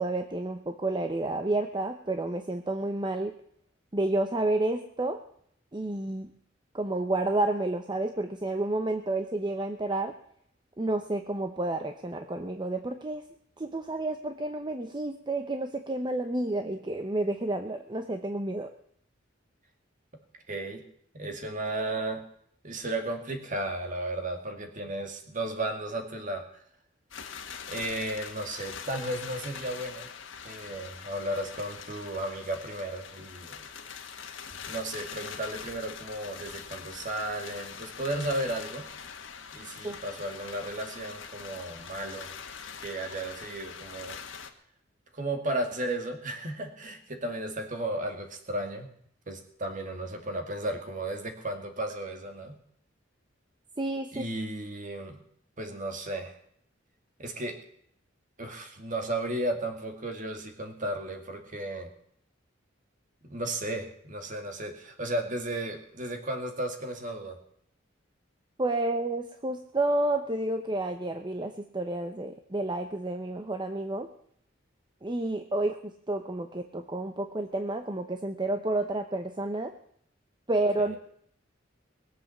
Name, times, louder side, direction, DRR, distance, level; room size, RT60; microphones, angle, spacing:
voice 1, 0.0-3.3 3.9-5.2 5.7-6.3 6.7-10.1 10.8-13.2 13.6-18.7 39.8-40.0 53.8-54.3 68.6-74.1 75.0-79.7 80.5-81.0, right 2 dB, 25° right, 7 dB, 0.8 m, -30 dB
voice 2, 20.5-20.8 21.1-22.2 22.6-26.4 27.7-30.1 30.4-33.6 34.6-38.8 39.5-42.3 42.8-44.2 45.1-48.9 49.3-52.6 54.1-55.2 55.6-56.4 57.2-57.6 58.4-61.9 63.2-67.4 80.8-81.0, right 1 dB, 45° right, 4 dB, 2.3 m, -34 dB
sound 1, 27.1-44.5, left 7 dB, 80° left, 1.5 m, -43 dB
20.5 x 7.7 x 7.2 m, 0.67 s
head